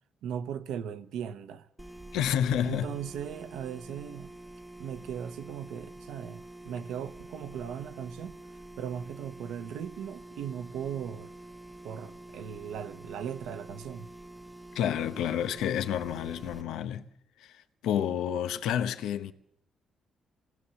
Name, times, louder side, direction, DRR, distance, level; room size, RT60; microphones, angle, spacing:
voice 1, 0.2-1.7 2.6-4.3 4.8-8.4 8.8-11.3 11.8-14.1, right 8 dB, 85° right, 1.1 m, -38 dB
sound 1, 1.8-16.6, right 1 dB, 5° right, 1.0 m, -47 dB
voice 2, 2.1-2.9 14.7-17.0 17.4-19.3, left 9 dB, 85° left, 1.0 m, -29 dB
27.0 x 18.0 x 7.1 m
cardioid pair, 90°, 0 cm